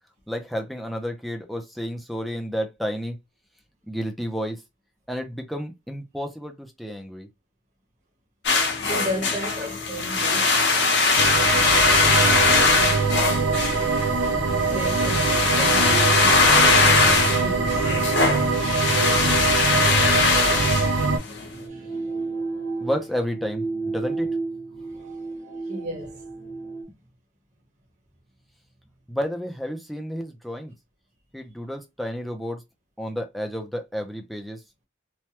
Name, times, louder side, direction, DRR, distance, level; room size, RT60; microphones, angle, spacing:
voice 1, 0.3-3.2 3.9-4.6 5.1-7.3 22.8-24.3 29.1-30.7 31.3-32.6 33.0-34.6, equal, ahead, 0.5 m, -31 dB
sound 1, 8.4-21.5, left 4 dB, 70° left, 0.9 m, -21 dB
voice 2, 8.9-10.6 14.7-19.6 21.5-22.3 24.7-25.2 25.6-26.2, right 1 dB, 40° right, 1.2 m, -35 dB
sound 2, 11.2-21.2, right 4 dB, 85° right, 0.5 m, -23 dB
sound 3, 21.5-26.8, right 3 dB, 15° left, 0.9 m, -32 dB
3.2 x 2.2 x 2.8 m
head